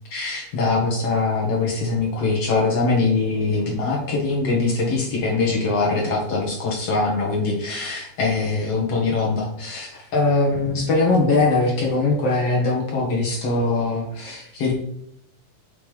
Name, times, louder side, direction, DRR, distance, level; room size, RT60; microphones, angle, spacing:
voice 1, 0.1-14.7, left 3 dB, 50° left, -2 dB, 2.2 m, -22 dB
7.3 x 5.6 x 3.3 m, 0.74 s
omnidirectional pair, 4.2 m